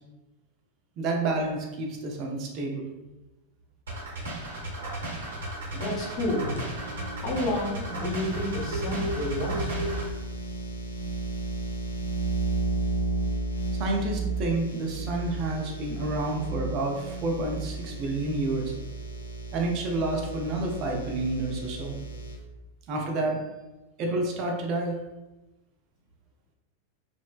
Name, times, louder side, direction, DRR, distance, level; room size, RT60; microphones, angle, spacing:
voice 1, 1.0-2.9 13.8-18.7 19.5-22.0 22.9-23.4 24.0-25.0, right 2 dB, 40° right, 0 dB, 0.5 m, -29 dB
sound 1, 3.9-10.1, right 1 dB, 65° right, 0.9 m, -34 dB
voice 2, 5.7-6.6 7.2-9.7, left 1 dB, 35° left, -2 dB, 0.9 m, -30 dB
sound 2, 6.5-22.3, right 2 dB, 75° left, 0.4 m, -34 dB
3.1 x 2.0 x 2.3 m, 1.1 s
figure-of-eight pair, 90°, 0 cm